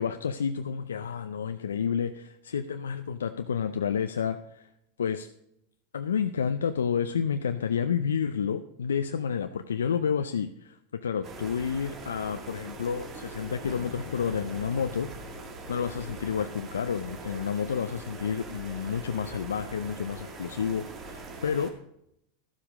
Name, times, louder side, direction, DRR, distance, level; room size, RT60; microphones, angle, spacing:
voice 1, 0.0-4.7 5.0-5.3 5.9-15.1 15.7-21.7, left 7 dB, 90° left, 8 dB, 0.5 m, -30 dB
sound 1, 11.2-21.7, right 3 dB, 35° right, 2.2 m, -42 dB
Thunder, 13.6-18.8, left 8 dB, 75° left, 0.9 m, -48 dB
13.0 x 7.3 x 5.0 m, 0.79 s
hypercardioid pair, 100°, 0 cm